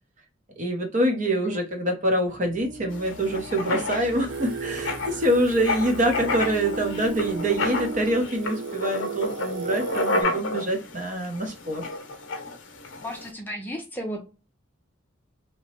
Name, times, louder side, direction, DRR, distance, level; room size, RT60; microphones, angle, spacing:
voice 1, 0.6-11.9, right 1 dB, 40° right, 3 dB, 0.8 m, -25 dB
sound 1, 2.3-9.2, right 2 dB, 90° right, 1.6 m, -39 dB
Writing, 2.9-13.3, left 2 dB, 85° left, 0.6 m, -31 dB
Singing, 4.3-10.2, right 5 dB, 60° right, 0.4 m, -37 dB
voice 2, 13.0-14.2, equal, 10° left, 1 dB, 0.6 m, -34 dB
2.9 x 2.1 x 2.9 m, 0.31 s
head